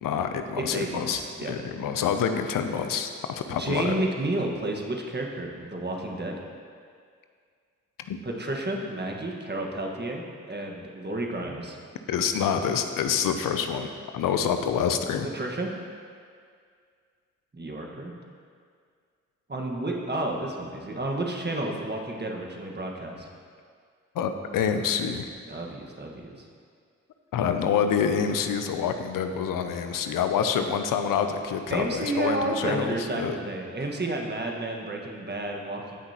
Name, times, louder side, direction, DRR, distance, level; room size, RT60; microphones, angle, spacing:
voice 1, 0.0-1.2 1.5-3.1 3.4-4.1 8.1-8.2 12.1-15.3 24.2-25.3 27.3-33.4, left 7 dB, 90° left, 7 dB, 0.6 m, -27 dB
voice 2, 0.6-1.5 3.6-6.4 8.2-11.8 15.2-15.7 17.5-18.1 19.5-23.3 25.5-26.5 31.7-36.0, right 2 dB, 30° right, 0 dB, 1.5 m, -31 dB
16.0 x 6.0 x 2.9 m, 2.1 s
supercardioid pair, 40°, 32 cm